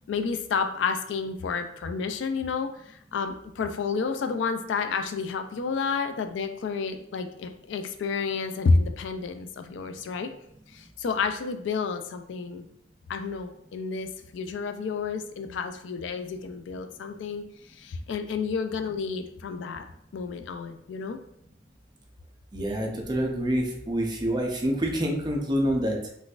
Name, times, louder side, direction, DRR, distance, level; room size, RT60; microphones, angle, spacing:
voice 1, 0.1-10.3 10.7-12.6 13.1-19.8 20.1-21.2, left 4 dB, 90° left, 7 dB, 0.3 m, -30 dB
voice 2, 22.5-26.1, equal, 25° right, 1 dB, 0.5 m, -27 dB
3.8 x 2.4 x 2.4 m, 0.72 s
head